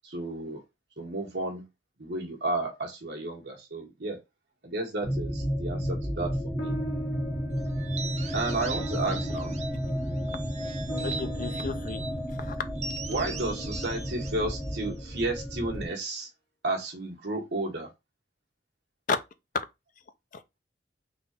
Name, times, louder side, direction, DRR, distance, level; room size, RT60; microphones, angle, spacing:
voice 1, 0.0-0.6 1.0-1.6 2.0-4.2 4.6-6.7 8.3-9.5 13.1-16.3 16.6-17.9, right 2 dB, 70° right, 1.4 m, -32 dB
sound 1, 5.0-15.8, equal, 20° left, 1.3 m, -32 dB
sound 2, 6.6-15.3, equal, 75° left, 1.1 m, -43 dB
sound 3, 7.8-9.9 10.3-12.2 12.8-15.3, right 5 dB, 40° right, 0.6 m, -41 dB
voice 2, 11.0-12.1 12.4-12.5 19.1-19.2 20.3-20.6, left 4 dB, 50° left, 0.5 m, -32 dB
3.9 x 2.5 x 4.2 m
head